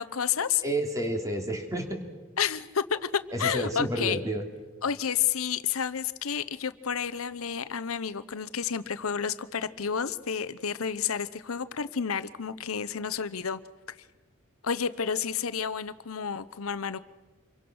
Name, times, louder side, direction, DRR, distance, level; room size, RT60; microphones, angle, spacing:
voice 1, 0.0-0.6 2.4-4.2 4.8-13.6 13.9-14.0 14.6-17.0, left 7 dB, 90° left, 15 dB, 0.8 m, -30 dB
voice 2, 0.6-2.0 3.3-4.4, right 1 dB, 15° right, 4 dB, 3.1 m, -30 dB
27.5 x 23.5 x 6.2 m, 1.2 s
head